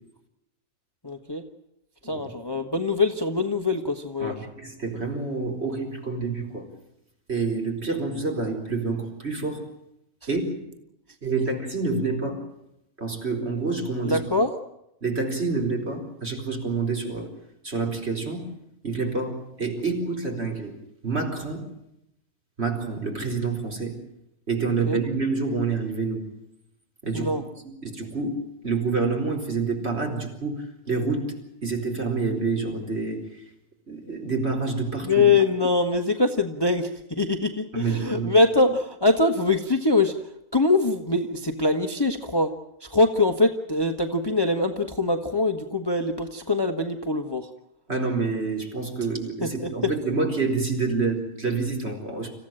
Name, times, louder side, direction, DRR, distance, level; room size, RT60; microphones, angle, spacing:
voice 1, 1.0-1.4 2.0-4.4 14.0-14.5 24.9-25.0 27.1-27.4 35.0-42.5 42.8-47.5 49.4-49.9, left 3 dB, 15° left, 6 dB, 1.2 m, -23 dB
voice 2, 4.2-6.7 7.3-9.7 10.3-10.7 11.2-12.5 13.0-14.2 15.0-17.3 17.6-18.5 18.8-20.8 21.0-21.7 22.6-24.0 24.5-26.3 27.0-27.3 27.6-33.4 33.9-35.2 37.7-38.4 47.9-52.3, right 4 dB, 45° right, 2 dB, 4.7 m, -28 dB
26.5 x 15.5 x 9.0 m, 0.82 s
omnidirectional pair, 1.5 m